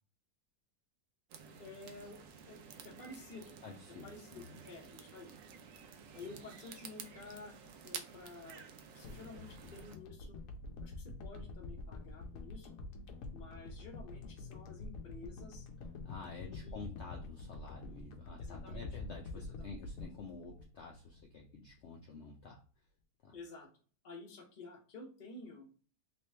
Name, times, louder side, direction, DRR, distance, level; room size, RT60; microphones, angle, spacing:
sound 1, 1.3-10.0, right 7 dB, 75° right, 0.7 m, -52 dB
voice 1, 1.6-2.2 2.5-2.6 2.8-3.6 4.0-5.3 6.1-7.6 7.8-8.7 8.9-10.4 10.8-12.8 13.3-15.7 16.4-16.8 18.4-18.9 19.3-19.7 23.3-23.7 24.0-25.7, left 3 dB, 40° left, -1 dB, 0.7 m, -51 dB
voice 2, 3.6-4.6 6.2-6.3 16.0-22.6 23.2-23.3, left 4 dB, 90° left, 0 dB, 0.6 m, -49 dB
sound 2, 9.0-21.4 21.7-21.8, left 3 dB, 65° left, 0.9 m, -47 dB
3.3 x 3.0 x 3.2 m, 0.41 s
omnidirectional pair, 1.9 m